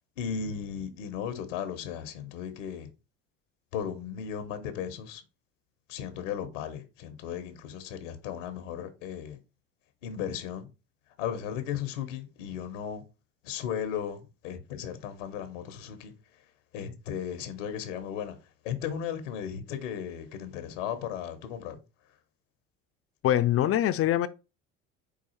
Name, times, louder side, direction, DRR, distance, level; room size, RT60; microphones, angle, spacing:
voice 1, 0.2-2.9 3.7-5.2 5.9-9.4 10.0-10.7 11.2-13.0 13.4-16.4 16.7-21.8, left 8 dB, 85° left, 0.8 m, -36 dB
voice 2, 23.2-24.3, left 12 dB, 40° left, 0.4 m, -23 dB
4.8 x 2.4 x 4.2 m
hypercardioid pair, 70°, 36 cm